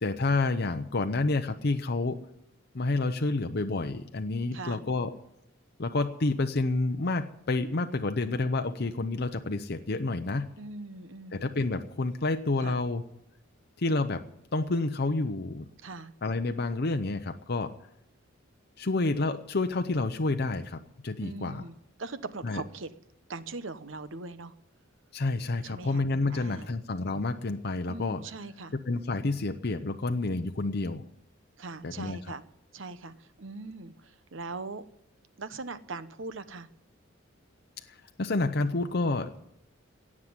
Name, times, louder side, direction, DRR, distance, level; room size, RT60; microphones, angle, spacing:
voice 1, 0.0-2.2 2.7-5.2 5.8-10.5 11.3-13.0 13.8-14.2 14.5-15.7 16.2-17.7 18.8-21.6 22.4-22.6 25.1-28.2 28.9-31.0 31.8-32.2 37.9-39.3, left 2 dB, 50° left, 7 dB, 0.7 m, -29 dB
voice 2, 10.6-11.5 12.6-12.8 15.8-16.1 21.2-22.9 23.3-24.5 25.6-26.0 26.3-26.7 27.9-28.7 31.6-32.4 32.7-34.8 35.4-36.7, right 3 dB, 70° right, 12 dB, 0.9 m, -40 dB
17.5 x 7.5 x 9.6 m, 0.78 s
head